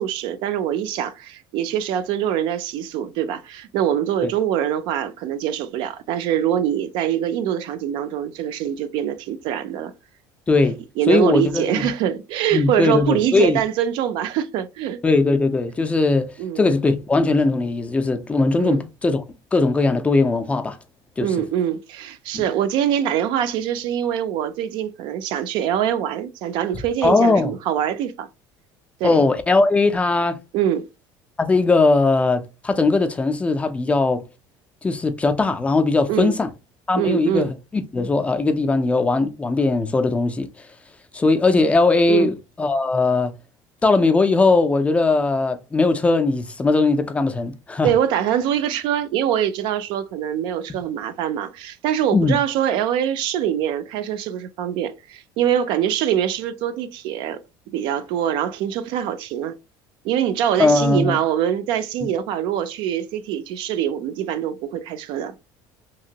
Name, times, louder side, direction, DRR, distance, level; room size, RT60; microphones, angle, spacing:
voice 1, 0.0-9.9 11.0-15.0 16.4-16.7 18.6-18.8 21.2-28.3 29.0-29.2 30.5-30.8 36.1-36.4 37.0-37.5 42.1-42.3 47.8-57.4 57.7-59.6 60.0-65.3, right 10 dB, 60° right, 0.4 m, -24 dB
voice 2, 10.5-10.8 11.1-11.9 12.5-13.6 15.0-19.2 19.5-20.8 21.2-21.3 22.3-22.4 27.0-27.5 29.0-30.4 31.4-34.2 34.8-36.5 36.9-40.5 41.1-43.3 43.8-47.9 52.1-52.4 60.6-61.2, left 3 dB, 15° left, 0.3 m, -19 dB
2.9 x 2.5 x 2.7 m
cardioid pair, 145°, 9 cm